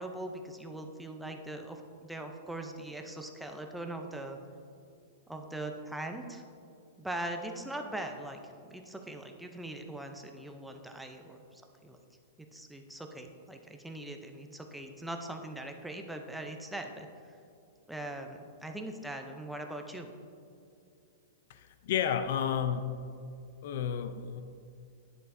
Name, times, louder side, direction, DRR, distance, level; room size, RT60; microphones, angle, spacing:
voice 1, 0.0-4.4 5.3-6.4 7.0-12.0 12.4-17.1 17.9-20.1, right 1 dB, 5° right, 3 dB, 0.5 m, -41 dB
voice 2, 21.5-22.9 23.6-24.4, left 8 dB, 60° left, 10 dB, 0.4 m, -31 dB
10.5 x 6.8 x 2.6 m, 2.5 s
hypercardioid pair, 150°, 0 cm